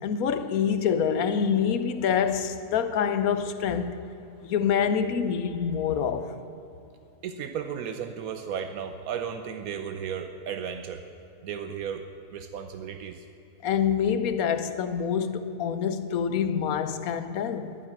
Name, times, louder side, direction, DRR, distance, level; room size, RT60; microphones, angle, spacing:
voice 1, 0.0-3.9 4.4-6.3 13.6-17.8, left 7 dB, 85° left, 1.3 m, -26 dB
voice 2, 7.2-11.0 11.4-13.2, right 7 dB, 80° right, 1.2 m, -34 dB
10.5 x 9.8 x 9.3 m
omnidirectional pair, 1.5 m